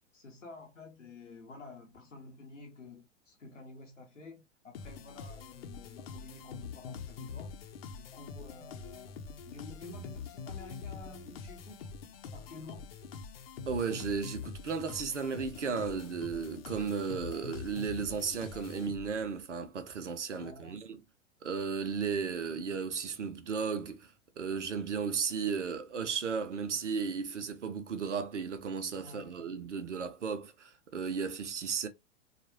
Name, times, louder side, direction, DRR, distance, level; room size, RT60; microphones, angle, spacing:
voice 1, 0.1-7.5 7.8-11.8 12.3-12.9 20.3-20.8 29.0-29.5, left 3 dB, 85° left, 0.9 m, -51 dB
sound 1, 4.7-19.3, left 5 dB, 50° left, 0.8 m, -44 dB
voice 2, 13.7-21.0 21.4-31.9, right 5 dB, 70° right, 0.8 m, -35 dB
3.7 x 2.5 x 2.9 m
figure-of-eight pair, 100°, 37 cm